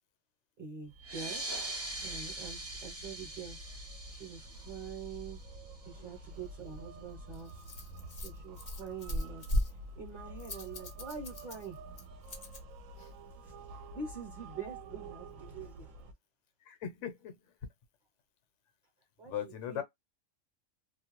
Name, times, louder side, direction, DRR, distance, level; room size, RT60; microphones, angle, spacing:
voice 1, 0.6-1.5 2.0-3.8 4.1-5.4 5.8-7.6 8.2-9.4 10.0-11.8 13.4-13.6 13.9-15.9 19.2-19.3 19.7-19.8, right 5 dB, 40° right, 0.9 m, -45 dB
sound 1, 0.8-16.1, right 2 dB, 85° right, 1.0 m, -49 dB
sound 2, 1.0-6.1, right 2 dB, 20° right, 0.4 m, -42 dB
Rattle, 6.6-12.6, left 1 dB, 40° left, 0.6 m, -39 dB
voice 2, 16.6-17.5 19.2-19.8, left 9 dB, 65° left, 1.0 m, -40 dB
2.6 x 2.2 x 2.8 m
omnidirectional pair, 1.4 m